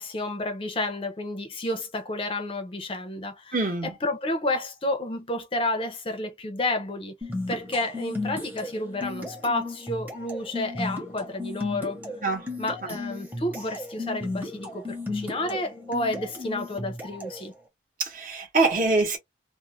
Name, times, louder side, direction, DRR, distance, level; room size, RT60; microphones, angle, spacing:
voice 1, 0.0-3.6 3.8-7.1 7.5-12.0 12.6-17.5, left 2 dB, 30° left, 0.5 m, -30 dB
voice 2, 3.5-3.9 12.2-12.5 18.0-19.2, right 3 dB, 45° right, 0.9 m, -24 dB
sound 1, 7.2-17.5, left 2 dB, 10° right, 0.8 m, -35 dB
2.4 x 2.1 x 2.9 m
head